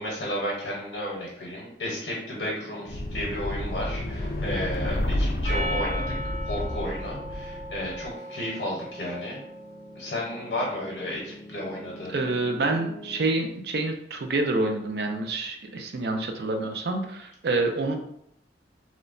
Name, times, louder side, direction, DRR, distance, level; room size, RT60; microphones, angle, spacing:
voice 1, 0.0-6.0 6.5-9.4 9.9-12.2, left 1 dB, 70° left, -4 dB, 0.7 m, -33 dB
Piano, 2.3-13.3, left 1 dB, 15° right, 0.7 m, -47 dB
sound 1, 2.9-8.1, left 1 dB, 50° left, 0.3 m, -30 dB
Percussion, 5.4-10.0, equal, 45° right, 0.9 m, -37 dB
voice 2, 12.1-18.0, right 2 dB, 60° right, 4 dB, 0.4 m, -27 dB
3.1 x 2.0 x 2.4 m, 0.74 s
head